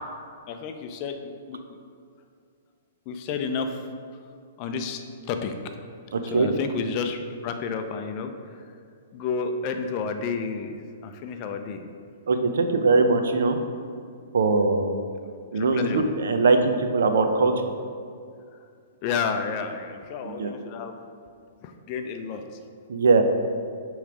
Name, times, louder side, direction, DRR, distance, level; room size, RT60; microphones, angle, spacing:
voice 1, 0.5-1.2 1.5-1.6 3.1-3.8 4.6-5.0 5.3-5.8 6.3-8.3 9.1-11.9 15.5-16.1 19.0-21.0 21.6-22.4, left 5 dB, 35° left, 6 dB, 0.4 m, -31 dB
voice 2, 6.1-6.5 12.3-13.6 14.3-15.0 15.5-17.5 20.2-20.5 22.9-23.2, right 3 dB, 80° right, 7 dB, 0.6 m, -21 dB
6.7 x 3.2 x 5.0 m, 2.2 s
hypercardioid pair, 160°, 0 cm